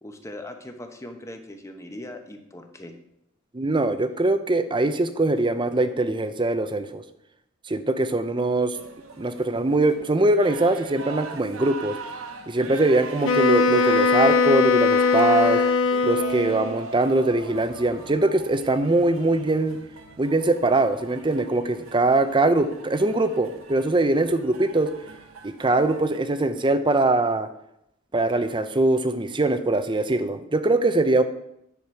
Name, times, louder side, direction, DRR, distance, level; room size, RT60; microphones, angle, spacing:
voice 1, 0.0-2.9, left 1 dB, 15° left, 5 dB, 0.9 m, -40 dB
voice 2, 3.5-7.0 7.7-8.8 9.2-12.0 12.5-15.6 16.0-19.8 20.2-24.9 25.4-27.5 28.1-31.2, right 2 dB, 25° right, 10 dB, 0.6 m, -22 dB
sound 1, 8.7-26.2, right 4 dB, 80° right, 1.1 m, -41 dB
Wind instrument woodwind instrument, 13.2-16.8, left 4 dB, 70° left, 0.6 m, -20 dB
10.0 x 6.7 x 4.6 m, 0.79 s
head